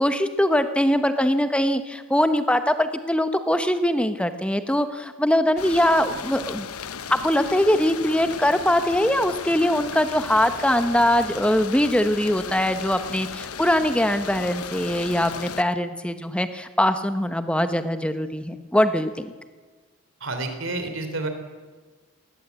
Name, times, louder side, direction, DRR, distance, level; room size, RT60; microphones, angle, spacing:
voice 1, 0.0-6.7 7.1-19.3, left 1 dB, 5° left, 9 dB, 1.0 m, -22 dB
sound 1, 5.6-15.6, left 6 dB, 90° left, 1.0 m, -35 dB
voice 2, 20.2-21.3, right 2 dB, 60° right, 7 dB, 3.4 m, -29 dB
21.0 x 19.0 x 8.2 m, 1.4 s
head